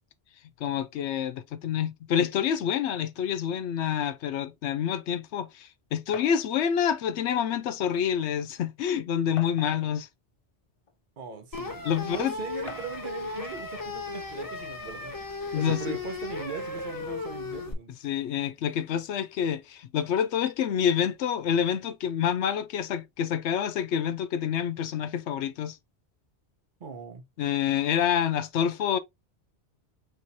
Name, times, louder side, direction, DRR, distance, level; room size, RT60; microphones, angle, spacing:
voice 1, 0.6-10.1 11.8-12.3 15.5-16.0 18.0-25.8 27.4-29.0, left 8 dB, 80° left, 0.9 m, -27 dB
sound 1, 6.1-6.4 7.5-7.6 8.1-8.2 9.4-10.0 10.8-10.9 12.7-13.1, left 5 dB, 45° left, 0.4 m, -43 dB
voice 2, 11.2-15.2 15.5-17.9 26.8-27.3, right 5 dB, 50° right, 0.9 m, -39 dB
sound 2, 11.5-17.7, left 3 dB, 20° left, 0.8 m, -36 dB
4.6 x 3.4 x 2.7 m
omnidirectional pair, 1.2 m